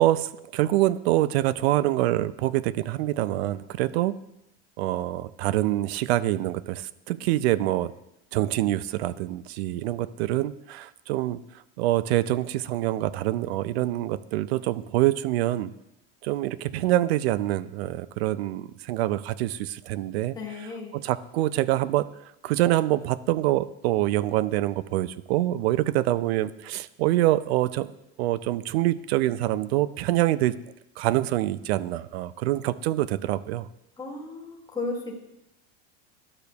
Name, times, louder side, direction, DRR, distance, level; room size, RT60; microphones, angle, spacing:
voice 1, 0.0-4.1 4.8-7.9 8.3-11.4 11.8-15.7 16.2-20.4 20.9-22.1 22.4-27.9 28.2-30.6 31.0-33.7, right 15 dB, 85° right, 17 dB, 0.5 m, -25 dB
voice 2, 20.3-20.9 34.0-35.2, left 3 dB, 10° left, -1 dB, 1.2 m, -34 dB
12.0 x 6.7 x 2.3 m, 0.87 s
supercardioid pair, 155°, 31 cm